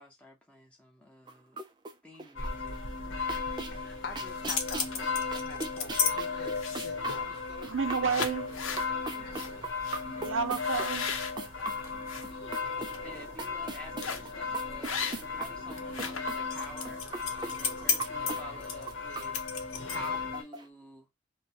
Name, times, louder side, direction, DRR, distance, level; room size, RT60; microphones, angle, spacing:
voice 1, 0.0-1.6 2.0-2.8 13.0-21.1, equal, 5° left, 0.9 m, -50 dB
sound 1, 1.3-2.8 3.1-20.7, right 4 dB, 20° right, 0.4 m, -42 dB
sound 2, 2.4-20.4, left 4 dB, 70° left, 1.0 m, -36 dB
voice 2, 3.8-8.7 9.0-9.6, left 4 dB, 50° left, 0.6 m, -46 dB
sound 3, 4.3-6.1 6.6-7.0 7.6-7.8 8.1-8.9 9.3-9.5 9.8-10.0 10.6-12.2 12.7-13.0 14.0-14.3 14.8-15.4 15.7-20.2, left 6 dB, 90° left, 0.7 m, -34 dB
voice 3, 7.6-8.5 9.2-9.4 10.0-11.1, right 5 dB, 75° right, 0.6 m, -31 dB
2.9 x 2.2 x 2.8 m
head